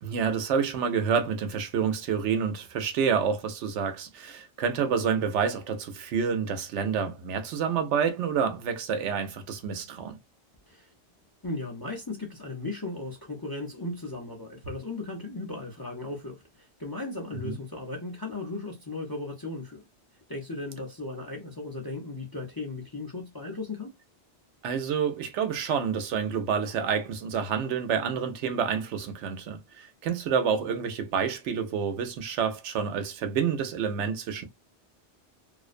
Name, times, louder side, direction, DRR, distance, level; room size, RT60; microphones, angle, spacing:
voice 1, 0.0-10.2 17.4-17.6 24.6-34.4, right 6 dB, 85° right, 0.9 m, -28 dB
voice 2, 11.4-19.9 20.3-24.0, left 2 dB, 30° left, 0.4 m, -36 dB
2.5 x 2.0 x 2.4 m
omnidirectional pair, 1.2 m